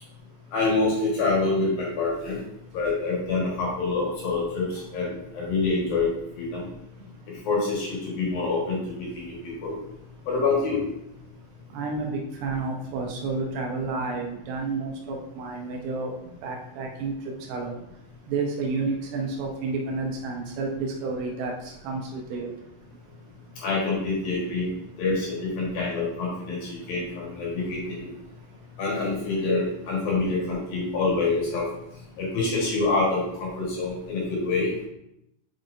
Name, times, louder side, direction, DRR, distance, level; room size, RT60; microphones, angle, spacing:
voice 1, 0.5-2.4 2.7-4.7 4.9-6.7 7.4-9.4 9.6-9.7 10.3-10.8 23.6-24.7 25.0-28.1 28.8-31.7 32.2-34.7, left 3 dB, 60° left, -4 dB, 2.9 m, -26 dB
voice 2, 11.7-16.1 16.4-17.1 17.5-17.8 18.3-22.5 27.8-27.9 30.2-30.3, right 3 dB, 80° right, 1 dB, 2.7 m, -30 dB
7.5 x 5.4 x 2.6 m, 0.81 s
omnidirectional pair, 5.2 m